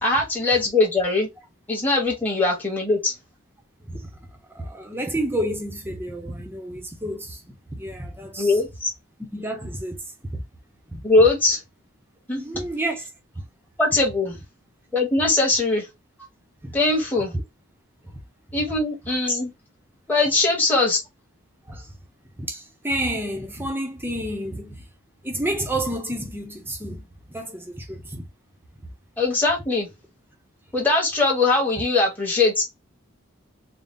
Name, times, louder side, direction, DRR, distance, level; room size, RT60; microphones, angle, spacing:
voice 1, 0.0-1.3 1.7-3.1 8.4-8.9 11.0-11.6 12.3-12.4 13.8-14.4 14.9-15.9 16.7-17.3 18.5-19.5 20.1-21.0 29.2-29.9 30.7-32.6, left 3 dB, 10° left, 1.4 m, -21 dB
voice 2, 4.5-8.5 9.3-10.0 10.3-10.4 10.9-11.0 12.4-13.0 16.6-16.7 18.0-18.2 21.7-21.9 22.4-24.9 25.2-28.2, right 1 dB, 10° right, 0.9 m, -30 dB
4.1 x 2.3 x 3.6 m
head